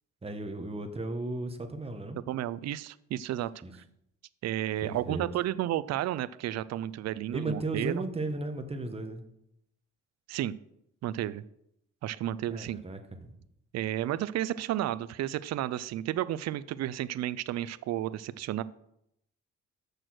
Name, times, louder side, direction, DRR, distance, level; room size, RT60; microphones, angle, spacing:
voice 1, 0.2-2.2 3.6-3.7 4.8-5.3 7.3-9.2 12.5-13.4, right 2 dB, 20° right, 6 dB, 1.2 m, -35 dB
voice 2, 2.3-3.5 4.4-8.0 10.3-10.6 11.0-11.4 12.0-12.8 13.7-18.6, right 13 dB, 60° right, 17 dB, 0.5 m, -32 dB
6.7 x 6.2 x 6.2 m, 0.78 s
cardioid pair, 90°, 30 cm